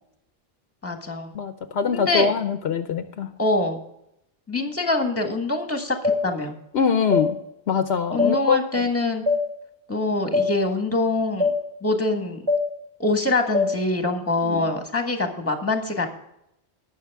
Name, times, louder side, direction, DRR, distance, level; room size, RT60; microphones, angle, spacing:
voice 1, 0.8-1.3 1.9-2.3 3.4-3.8 4.5-6.0 6.2-6.5 8.1-9.2 9.9-11.5 11.8-12.4 13.0-16.1, left 2 dB, 15° left, 4 dB, 1.5 m, -24 dB
voice 2, 1.3-3.3 6.7-7.4 7.7-8.9 14.4-14.7, left 6 dB, 80° left, 9 dB, 1.0 m, -24 dB
sound 1, 6.0-6.2 7.1-7.3 8.2-8.3 9.3-9.4 10.3-10.5 11.4-11.6 12.5-12.6 13.5-13.7, left 3 dB, 25° right, 1.9 m, -20 dB
19.0 x 6.4 x 3.5 m, 0.80 s
omnidirectional pair, 1.1 m